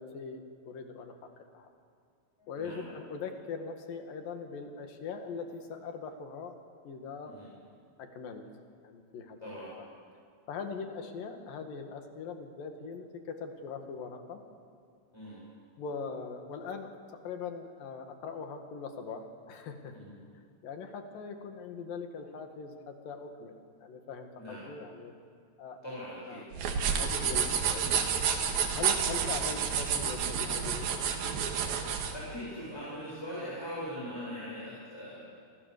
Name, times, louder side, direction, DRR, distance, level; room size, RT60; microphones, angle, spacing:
voice 1, 0.0-1.7 2.5-6.6 6.9-7.3 8.0-8.5 8.8-9.5 10.5-14.4 15.8-16.9 17.3-20.0 20.6-23.6 23.8-25.1 25.6-25.8 26.3-28.4 28.7-31.0, left 5 dB, 70° left, 5 dB, 3.6 m, -41 dB
voice 2, 2.4-2.8 7.3-7.5 9.4-9.7 15.1-15.4 20.0-20.1 24.4-24.7 25.8-26.4 32.0-35.3, equal, 5° left, -7 dB, 7.1 m, -41 dB
sound 1, 26.5-32.1, right 7 dB, 80° right, 3.8 m, -30 dB
28.0 x 25.0 x 6.8 m, 2.2 s
omnidirectional pair, 4.2 m